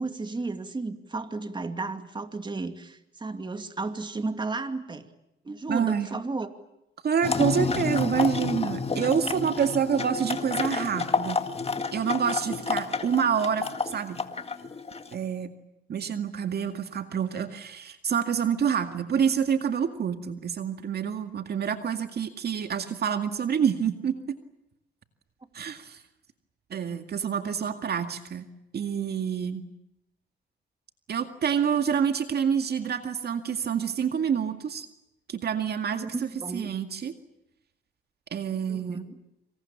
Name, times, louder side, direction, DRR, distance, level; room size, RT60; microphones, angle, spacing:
voice 1, 0.0-5.1 5.4-6.5 36.0-36.7 38.7-39.2, right 3 dB, 25° right, 8 dB, 2.5 m, -33 dB
voice 2, 5.7-6.1 7.0-11.4 11.9-14.2 15.1-15.5 15.9-24.4 25.5-26.0 26.7-28.4 28.7-29.6 31.1-34.9 35.3-37.1 38.3-39.0, right 7 dB, 55° right, 7 dB, 2.1 m, -27 dB
sound 1, 7.2-15.1, left 4 dB, 30° left, 2.0 m, -30 dB
27.5 x 26.0 x 7.4 m, 0.86 s
cardioid pair, 90°, 20 cm